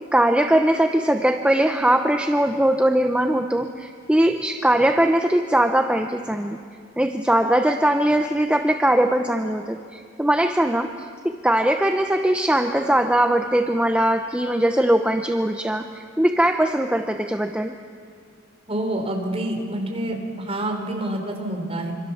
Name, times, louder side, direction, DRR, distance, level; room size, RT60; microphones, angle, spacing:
voice 1, 0.0-6.6 7.0-10.9 11.4-17.7, right 1 dB, 5° right, 5 dB, 0.8 m, -20 dB
voice 2, 18.7-21.9, right 1 dB, 30° right, 2 dB, 3.9 m, -27 dB
26.0 x 26.0 x 7.1 m, 2.2 s
head